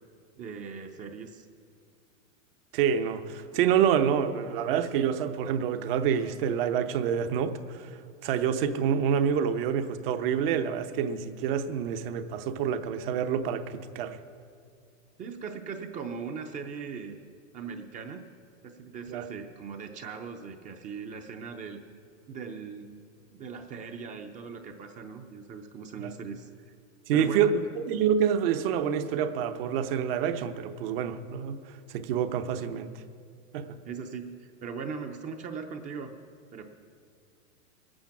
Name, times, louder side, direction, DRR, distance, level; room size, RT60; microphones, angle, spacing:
voice 1, 0.4-1.5 15.2-17.2 17.5-18.3 18.6-21.8 22.3-22.9 23.3-26.7 27.1-27.5 33.8-36.1 36.5-36.6, right 5 dB, 20° right, 5 dB, 0.6 m, -39 dB
voice 2, 2.7-7.9 8.2-14.2 19.1-19.3 26.0-26.1 27.1-31.6 31.9-32.9 33.5-33.8, right 8 dB, 45° right, 9 dB, 0.9 m, -27 dB
19.5 x 8.9 x 5.9 m, 2.2 s
hypercardioid pair, 140°, 40 cm